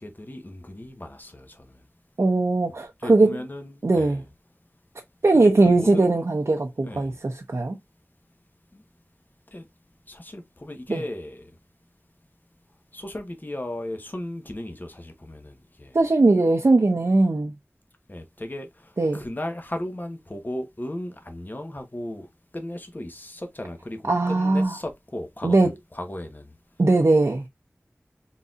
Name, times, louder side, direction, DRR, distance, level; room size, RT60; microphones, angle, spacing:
voice 1, 0.0-1.9 3.0-4.2 5.3-6.1 6.8-7.2 8.7-8.8 9.5-9.7 10.1-11.6 12.9-16.0 18.1-22.3 22.5-26.6, left 1 dB, 40° left, 1.0 m, -36 dB
voice 2, 2.2-3.4 3.8-4.2 5.2-7.8 10.9-11.0 15.9-17.5 19.0-19.2 24.1-24.7 25.4-25.7 26.8-27.4, right 2 dB, 80° right, 0.6 m, -20 dB
4.1 x 4.0 x 2.4 m
wide cardioid pair, 50°, 5 cm